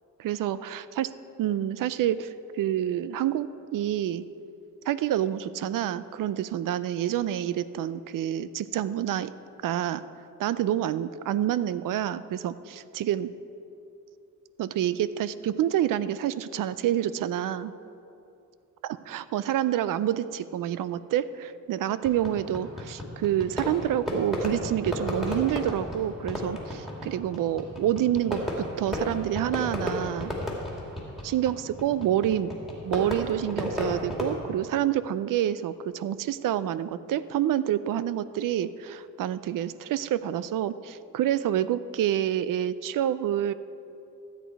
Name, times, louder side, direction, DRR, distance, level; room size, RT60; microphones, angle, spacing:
voice 1, 0.2-1.1 1.4-4.2 4.9-9.3 9.6-10.0 10.4-13.3 14.6-17.7 18.8-30.3 31.2-32.5 32.8-43.5, right 11 dB, 70° right, 15 dB, 0.5 m, -28 dB
Fireworks, 22.0-34.3, left 1 dB, ahead, 2.3 m, -33 dB
13.0 x 8.1 x 4.6 m, 2.7 s
cardioid pair, 100°, 34 cm